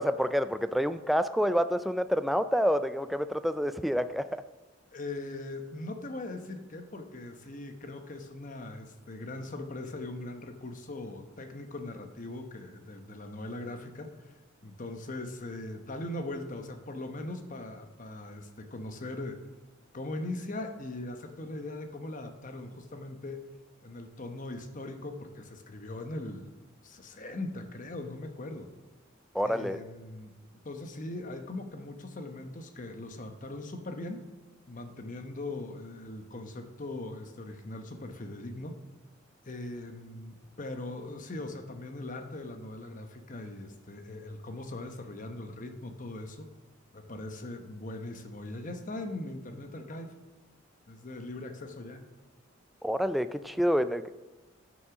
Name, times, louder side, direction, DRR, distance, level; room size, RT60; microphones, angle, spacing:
voice 1, 0.0-4.4 29.3-29.8 52.8-54.1, equal, ahead, 10 dB, 0.3 m, -28 dB
voice 2, 4.9-14.1 14.6-19.4 19.9-23.5 23.8-26.5 26.8-28.7 29.4-30.3 30.6-34.2 34.7-38.7 39.4-46.5 46.9-50.1 50.9-52.0, left 2 dB, 40° left, 7 dB, 0.9 m, -40 dB
13.0 x 6.3 x 6.0 m, 1.2 s
head